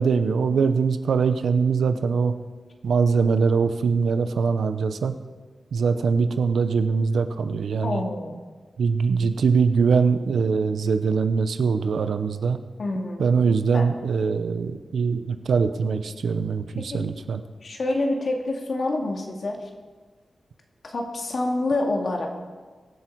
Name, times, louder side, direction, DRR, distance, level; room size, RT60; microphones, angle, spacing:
voice 1, 0.0-2.4 2.8-5.1 5.7-8.0 8.8-12.6 13.2-17.4, right 5 dB, 90° right, 10 dB, 0.8 m, -22 dB
voice 2, 7.8-8.4 12.8-13.2 13.7-13.9 16.9-17.0 17.6-19.6 20.8-22.3, left 2 dB, 50° left, 1 dB, 2.2 m, -27 dB
22.5 x 7.9 x 4.7 m, 1.4 s
wide cardioid pair, 160°, 0 cm